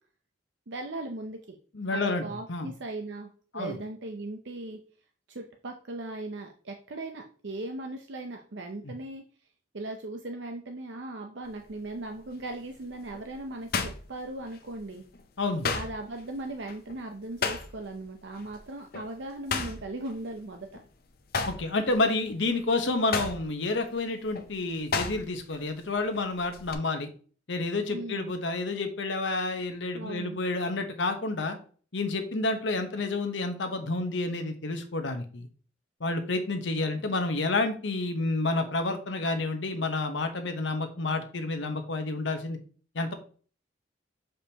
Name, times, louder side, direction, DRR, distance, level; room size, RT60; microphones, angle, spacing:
voice 1, 0.7-1.6 1.9-3.3 3.5-4.8 5.3-9.2 9.7-15.0 15.7-20.7 27.9-28.3 30.0-30.4, right 2 dB, 70° right, 4 dB, 0.7 m, -38 dB
voice 2, 1.7-2.2 2.5-2.7 3.5-3.8 8.8-8.9 15.4-15.7 21.5-27.1 27.5-31.6 31.9-35.5 36.0-42.6 42.9-43.1, left 2 dB, 75° left, 6 dB, 1.1 m, -29 dB
sound 1, 11.5-11.8 12.3-14.8 15.1-18.0 18.3-18.6 18.9-20.9 21.2-25.6 25.8-26.7, left 4 dB, 50° left, 0.7 m, -34 dB
6.8 x 5.1 x 2.9 m, 0.41 s
head